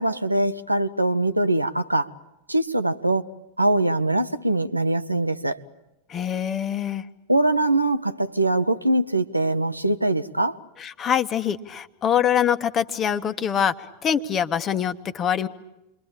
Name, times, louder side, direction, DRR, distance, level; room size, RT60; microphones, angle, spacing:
voice 1, 0.0-2.1 2.5-3.3 3.6-5.6 7.3-10.6, right 2 dB, 85° right, 10 dB, 1.0 m, -22 dB
voice 2, 6.1-7.0 10.8-13.7 14.0-15.5, left 8 dB, 25° left, 11 dB, 1.3 m, -24 dB
28.5 x 23.0 x 8.9 m, 0.92 s
figure-of-eight pair, 90°, 0 cm